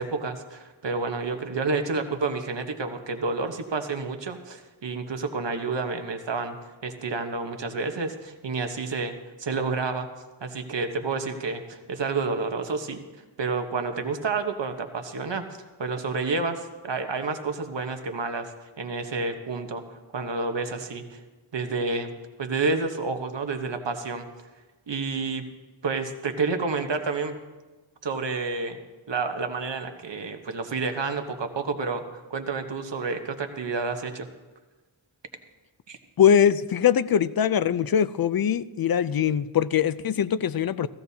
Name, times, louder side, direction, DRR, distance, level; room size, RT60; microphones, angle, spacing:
voice 1, 0.0-6.6 6.8-10.1 10.4-13.0 13.4-15.4 15.8-18.5 18.8-21.2 21.5-22.1 22.4-24.3 24.9-25.5 25.8-27.4 28.0-28.8 29.1-34.3 35.9-36.0, right 4 dB, 65° right, 6 dB, 1.2 m, -29 dB
voice 2, 36.2-40.9, left 8 dB, 50° left, 16 dB, 0.5 m, -22 dB
16.0 x 15.0 x 2.8 m, 1.2 s
wide cardioid pair, 80°, 47 cm